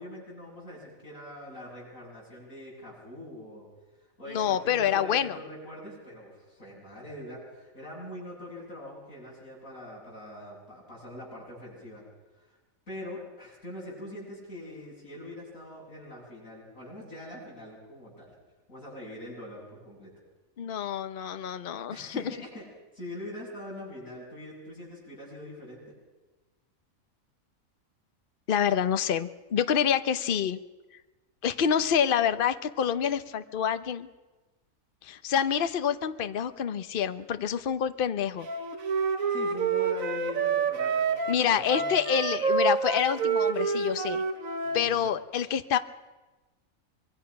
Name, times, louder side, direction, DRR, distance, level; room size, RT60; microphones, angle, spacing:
voice 1, 0.0-3.7 4.2-12.0 12.4-12.5 12.9-18.3 18.7-20.1 21.9-22.6 22.9-25.8 39.3-42.0 44.6-45.1, left 1 dB, 70° left, -4 dB, 8.7 m, -43 dB
voice 2, 4.3-5.4 20.6-22.1 28.5-30.6 31.4-34.1 35.0-38.5 41.3-44.2 44.7-45.8, left 8 dB, 45° left, 11 dB, 0.9 m, -27 dB
Wind instrument woodwind instrument, 38.5-44.8, right 5 dB, 70° right, 1.7 m, -28 dB
25.0 x 22.0 x 5.9 m, 1.2 s
omnidirectional pair, 1.4 m